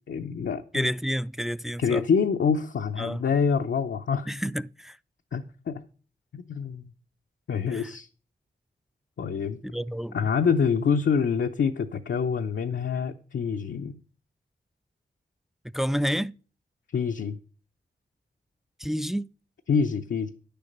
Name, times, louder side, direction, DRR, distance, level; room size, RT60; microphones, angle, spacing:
voice 1, 0.1-0.9 1.8-4.3 5.3-5.8 6.3-6.9 7.5-8.1 9.2-9.6 10.1-14.0 16.9-17.4 19.7-20.3, left 6 dB, 80° left, 0.6 m, -26 dB
voice 2, 0.7-2.0 3.0-3.2 4.3-5.0 7.7-7.9 9.6-10.3 15.7-16.3 18.8-19.3, equal, ahead, 0.3 m, -29 dB
9.6 x 6.9 x 5.3 m
cardioid pair, 40°, 19 cm